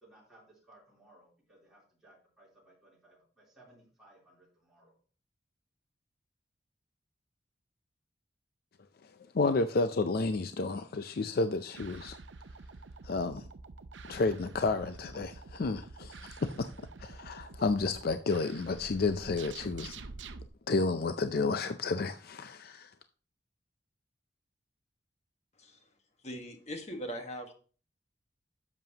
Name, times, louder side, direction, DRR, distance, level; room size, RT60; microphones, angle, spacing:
voice 1, 0.0-4.9, right 1 dB, 5° right, 3.3 m, -61 dB
voice 2, 9.3-12.2 13.0-13.5 14.1-16.7 17.0-20.0 20.7-22.9, left 3 dB, 55° left, 0.4 m, -31 dB
sound 1, 11.7-20.5, right 4 dB, 90° right, 0.6 m, -48 dB
voice 3, 25.6-25.9 26.2-27.5, equal, 40° left, 1.4 m, -40 dB
10.5 x 7.4 x 2.9 m
head